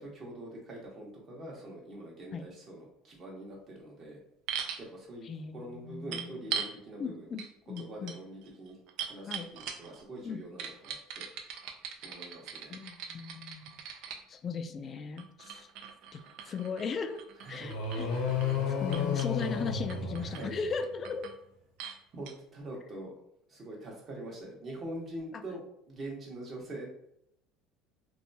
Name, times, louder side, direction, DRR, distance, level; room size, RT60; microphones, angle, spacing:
voice 1, 0.0-4.2 4.8-7.3 7.8-8.8 9.1-11.3 12.0-12.7 17.4-17.7 19.0-19.4 20.2-20.6 22.1-23.1 23.5-26.9, right 1 dB, 35° right, -2 dB, 1.1 m, -44 dB
sound 1, 4.5-4.8 6.1-6.7 7.4-7.5 7.8-10.0 10.6-14.2 15.2-18.6 18.9-19.5 19.9-20.4 20.8-21.4 21.8-22.0 22.3-22.4, right 7 dB, 70° right, 0.4 m, -41 dB
voice 2, 5.2-6.5 7.0-8.1 9.3-9.5 10.2-10.4 12.7-13.7 14.3-15.7 16.1-17.2 17.5-18.1 18.7-21.3, left 5 dB, 35° left, 9 dB, 0.3 m, -37 dB
sound 2, 17.6-20.9, left 6 dB, 80° left, 0.7 m, -32 dB
2.7 x 2.2 x 2.7 m, 0.74 s
supercardioid pair, 110°, 0 cm